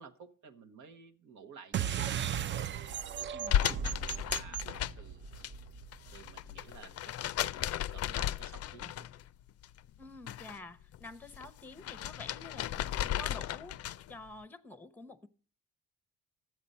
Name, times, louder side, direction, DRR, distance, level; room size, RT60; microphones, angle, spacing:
voice 1, 0.0-2.2 2.7-3.3 3.7-5.5 6.1-9.1, right 5 dB, 75° right, 1.1 m, -54 dB
sound 1, 1.7-6.6, right 9 dB, 40° right, 0.4 m, -37 dB
voice 2, 3.3-3.7 10.0-15.3, left 3 dB, 5° left, 0.8 m, -49 dB
sound 2, 3.5-5.5 5.8-9.3 9.6-10.6 10.9-14.2, left 11 dB, 55° left, 0.4 m, -35 dB
11.5 x 7.9 x 5.4 m
cardioid pair, 90°, 30 cm